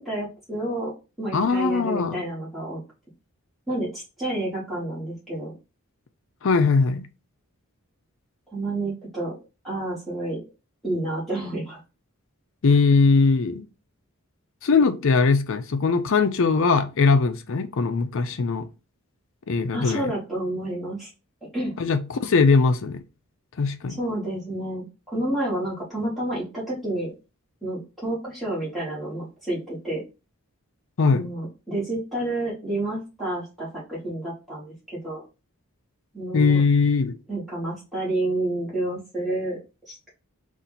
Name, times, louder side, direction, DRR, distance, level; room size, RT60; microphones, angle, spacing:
voice 1, 0.0-2.8 3.7-5.5 8.5-9.3 9.6-10.4 10.8-11.8 19.7-21.1 21.5-21.7 24.0-27.1 27.6-30.0 31.1-35.2 36.1-36.6 37.3-39.6 39.9-40.1, right 1 dB, ahead, 1.9 m, -29 dB
voice 2, 1.3-2.2 6.4-7.1 12.6-13.6 14.6-18.7 19.5-20.1 21.8-23.0 23.6-24.0 31.0-31.3 36.3-37.1, left 4 dB, 60° left, 0.5 m, -20 dB
4.2 x 2.6 x 4.0 m
head